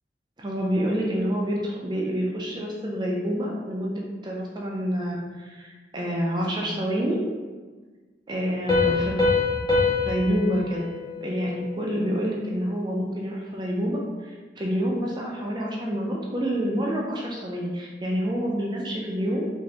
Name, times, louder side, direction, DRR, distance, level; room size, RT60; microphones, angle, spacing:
voice 1, 0.4-7.2 8.3-9.2 10.0-10.9 11.2-19.5, equal, 25° right, -2 dB, 0.4 m, -27 dB
Piano, 8.7-12.1, left 4 dB, 25° left, 0.8 m, -25 dB
3.7 x 2.6 x 3.3 m, 1.4 s
head